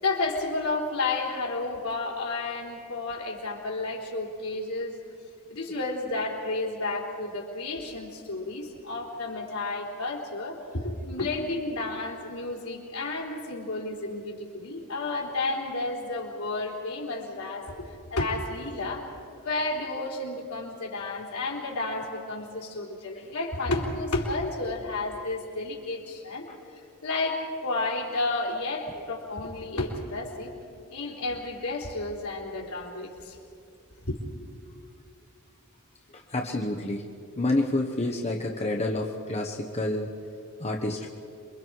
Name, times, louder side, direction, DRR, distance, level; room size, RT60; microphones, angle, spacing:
voice 1, 0.0-5.0 5.5-26.4 27.0-30.5 30.9-33.4 34.1-34.2, left 2 dB, 80° left, -2 dB, 3.9 m, -31 dB
voice 2, 36.1-37.0 37.4-40.1 40.6-41.1, left 2 dB, 30° left, 1 dB, 1.1 m, -28 dB
27.5 x 23.5 x 4.7 m, 2.5 s
head